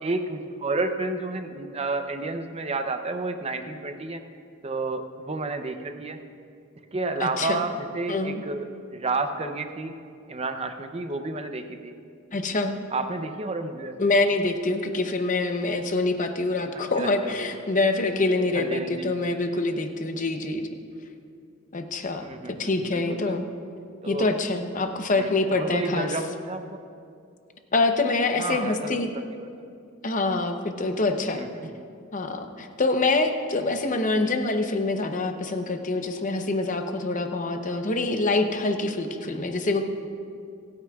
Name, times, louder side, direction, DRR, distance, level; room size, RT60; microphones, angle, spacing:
voice 1, 0.0-4.2 4.6-6.2 6.9-9.9 10.3-11.9 12.9-14.0 16.7-17.3 18.5-19.1 22.2-23.3 24.0-24.3 25.1-26.8 28.4-29.5 31.3-31.7 37.7-37.8 39.3-39.4, right 3 dB, 30° right, 7 dB, 0.6 m, -31 dB
voice 2, 7.2-7.6 8.1-8.4 12.3-12.7 14.0-20.7 21.7-23.4 24.1-26.2 27.7-29.1 30.0-31.4 32.1-39.8, left 2 dB, 40° left, 6 dB, 0.8 m, -25 dB
28.0 x 9.5 x 2.4 m, 2.4 s
head